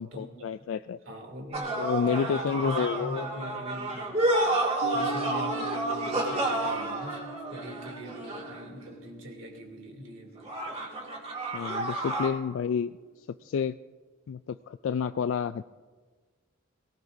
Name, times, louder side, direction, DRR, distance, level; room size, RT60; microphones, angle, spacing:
voice 1, 0.0-1.0 1.8-3.3 11.5-12.9 13.4-13.8 14.3-15.6, left 7 dB, 70° left, 12 dB, 0.3 m, -30 dB
voice 2, 1.0-4.2 4.9-10.4, equal, 75° right, 1 dB, 2.9 m, -42 dB
sound 1, 1.5-8.8 10.4-12.3, right 2 dB, 30° right, 2.2 m, -30 dB
sound 2, 4.8-11.6, right 2 dB, 90° left, 0.8 m, -42 dB
23.0 x 17.5 x 2.7 m, 1.4 s
head